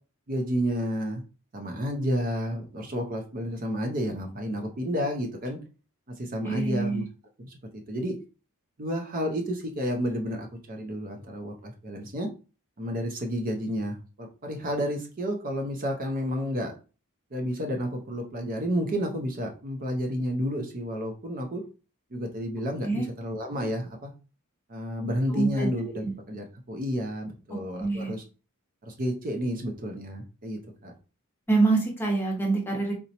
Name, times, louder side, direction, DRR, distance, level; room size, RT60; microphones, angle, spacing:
voice 1, 0.3-1.2 1.5-5.6 6.1-7.0 7.4-7.5 7.9-8.2 8.8-12.3 12.8-16.7 17.3-21.6 22.1-24.1 24.7-28.2 28.8-30.9, equal, 40° right, 3 dB, 0.5 m, -31 dB
voice 2, 6.4-7.0 22.8-23.1 25.3-25.7 26.0-26.1 27.8-28.1 31.5-32.9, right 3 dB, 10° left, 0 dB, 0.7 m, -25 dB
3.9 x 2.1 x 2.8 m, 0.34 s
head